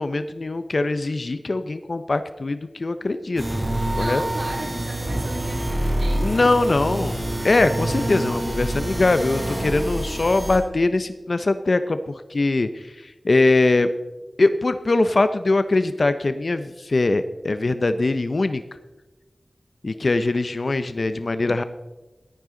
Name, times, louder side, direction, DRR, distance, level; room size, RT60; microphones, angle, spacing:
voice 1, 0.0-3.4 3.9-4.2 6.2-7.1 7.4-13.9 14.4-18.6 19.8-21.6, left 2 dB, 60° left, 10 dB, 0.6 m, -22 dB
sound 1, 3.4-10.6, right 1 dB, 35° right, 4.0 m, -26 dB
voice 2, 3.9-7.0 7.3-7.5, right 2 dB, 85° right, 1 dB, 2.4 m, -37 dB
15.0 x 12.0 x 3.8 m, 1.1 s
wide cardioid pair, 65°, 0 cm